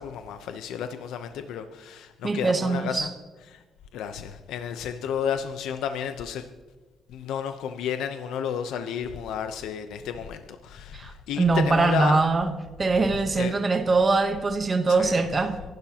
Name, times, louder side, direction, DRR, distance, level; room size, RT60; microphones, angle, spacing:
voice 1, 0.0-3.1 3.5-3.6 3.9-6.5 7.1-12.3 13.4-13.6 14.9-15.2, left 8 dB, 85° left, 8 dB, 0.8 m, -32 dB
voice 2, 2.2-3.1 10.9-12.5 12.8-15.6, right 3 dB, 30° right, 7 dB, 1.0 m, -23 dB
25.0 x 12.0 x 2.9 m, 1.3 s
cardioid pair, 90°, 0 cm